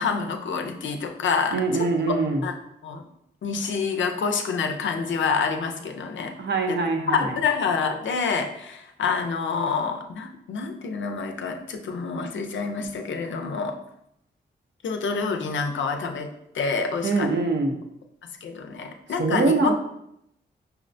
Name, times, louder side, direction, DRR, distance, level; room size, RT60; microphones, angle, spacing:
voice 1, 0.0-2.2 2.4-2.6 2.8-3.0 3.4-6.3 6.7-6.8 7.1-13.8 14.8-16.3 16.5-17.3 18.4-19.7, left 5 dB, 75° left, 5 dB, 0.5 m, -27 dB
voice 2, 1.5-2.4 6.4-7.3 17.0-17.8 19.2-19.7, right 3 dB, 60° right, 3 dB, 0.6 m, -23 dB
5.5 x 2.1 x 2.6 m, 0.78 s
cardioid pair, 60°, 20 cm